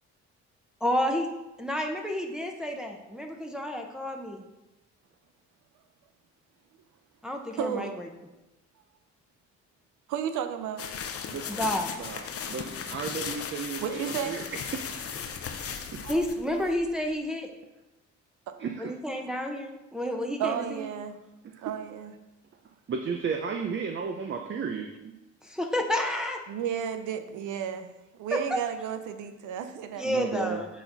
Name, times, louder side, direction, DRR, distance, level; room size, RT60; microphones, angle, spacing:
voice 1, 0.8-1.3 1.6-4.5 7.2-8.1 11.5-11.9 16.1-17.5 18.8-20.9 25.4-26.4 28.3-28.6 30.0-30.7, left 1 dB, ahead, 1 dB, 0.8 m, -30 dB
voice 2, 7.6-7.9 10.1-10.9 12.6-12.7 13.8-14.4 15.4-16.4 20.4-21.2 21.6-22.1 26.5-30.1, right 8 dB, 90° right, 8 dB, 0.7 m, -33 dB
sound 1, 10.8-17.1, left 7 dB, 50° left, 0.7 m, -37 dB
voice 3, 12.0-14.4 14.7-14.8 15.2-15.3 15.9-16.0 18.6-18.9 21.4-21.6 22.9-25.1 30.0-30.6, right 6 dB, 40° right, 4 dB, 0.6 m, -34 dB
8.3 x 4.1 x 4.0 m, 1.0 s
cardioid pair, 90°, 30 cm